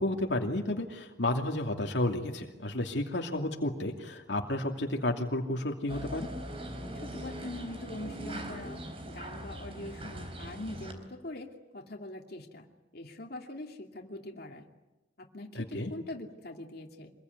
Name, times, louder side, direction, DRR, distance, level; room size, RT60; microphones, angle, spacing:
voice 1, 0.0-6.3 15.5-15.9, left 1 dB, 80° left, 2 dB, 2.6 m, -31 dB
sound 1, 5.9-10.9, right 1 dB, 35° right, 4.0 m, -41 dB
voice 2, 7.0-12.7 12.9-14.6 15.2-17.1, left 1 dB, 60° left, 1 dB, 2.7 m, -43 dB
26.5 x 21.5 x 9.5 m, 1.0 s
head